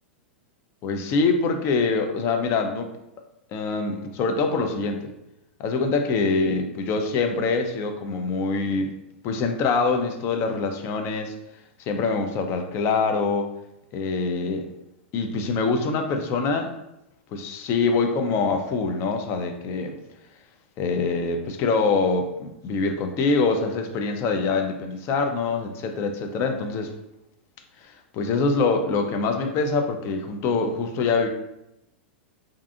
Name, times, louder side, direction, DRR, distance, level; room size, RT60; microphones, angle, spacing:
voice 1, 0.8-2.9 3.5-5.1 5.6-8.9 9.2-11.3 11.8-13.5 13.9-14.7 15.1-16.7 17.3-19.9 20.8-26.9 27.8-31.3, left 4 dB, 40° left, 6 dB, 0.4 m, -24 dB
2.5 x 2.4 x 2.6 m, 0.87 s
hypercardioid pair, 120°, 7 cm